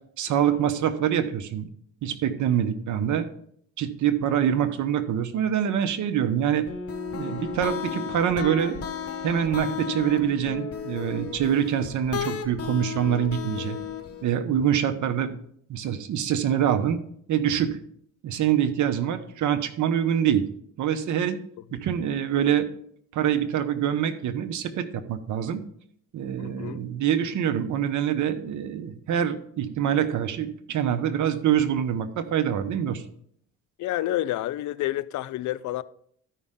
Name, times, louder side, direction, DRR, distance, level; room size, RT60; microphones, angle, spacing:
voice 1, 0.2-1.7 2.0-3.3 3.8-6.7 7.1-8.8 9.2-13.8 14.2-15.4 15.7-17.0 17.3-17.8 18.2-20.4 20.8-21.4 21.7-22.7 23.1-25.6 26.1-33.0, right 9 dB, 75° right, 1.0 m, -25 dB
sound 1, 6.7-14.3, left 7 dB, 50° left, 1.2 m, -34 dB
voice 2, 26.4-26.8 33.8-35.8, left 14 dB, 75° left, 0.5 m, -29 dB
13.0 x 5.5 x 3.7 m
cardioid pair, 90°, 30 cm